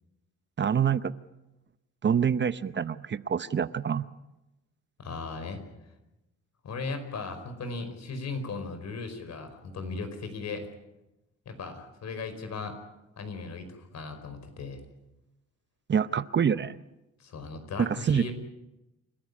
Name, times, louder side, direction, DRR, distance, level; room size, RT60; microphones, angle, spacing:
voice 1, 0.6-1.1 2.0-4.1 15.9-16.8 17.8-18.3, right 7 dB, 35° right, 14 dB, 0.8 m, -26 dB
voice 2, 5.0-5.6 6.6-10.7 11.4-12.8 13.2-14.8 17.2-18.3, left 4 dB, 60° left, 8 dB, 5.0 m, -37 dB
29.0 x 13.5 x 9.8 m, 0.97 s
cardioid pair, 90°, 30 cm